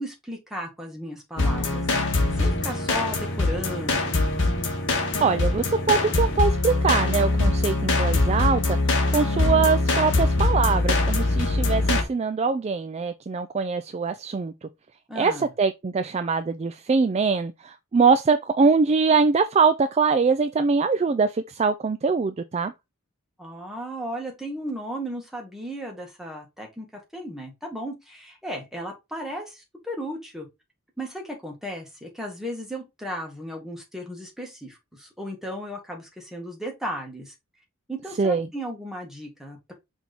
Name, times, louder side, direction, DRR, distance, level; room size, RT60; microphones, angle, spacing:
voice 1, 0.0-1.8 2.3-4.2 15.1-15.5 23.4-26.9 27.1-30.5 31.0-37.3 37.9-39.7, equal, ahead, 1.9 m, -35 dB
sound 1, 1.4-12.0, left 2 dB, 55° left, 1.7 m, -23 dB
voice 2, 5.2-8.8 9.1-14.5 15.2-22.7 38.2-38.5, right 5 dB, 30° right, 0.3 m, -23 dB
6.0 x 3.5 x 4.4 m
head